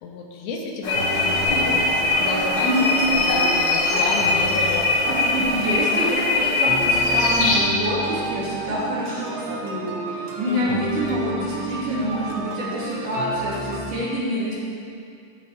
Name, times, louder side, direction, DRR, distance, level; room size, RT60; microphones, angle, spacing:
voice 1, 0.0-1.9 2.2-4.9 10.5-10.8, left 3 dB, 80° left, 0 dB, 3.8 m, -31 dB
sound 1, 0.8-7.6, left 3 dB, 50° left, 3.7 m, -21 dB
sound 2, 0.9-13.9, right 3 dB, 70° right, 3.3 m, -32 dB
voice 2, 5.1-14.5, equal, 45° right, -9 dB, 3.6 m, -27 dB
13.5 x 13.0 x 3.6 m, 2.4 s
omnidirectional pair, 5.7 m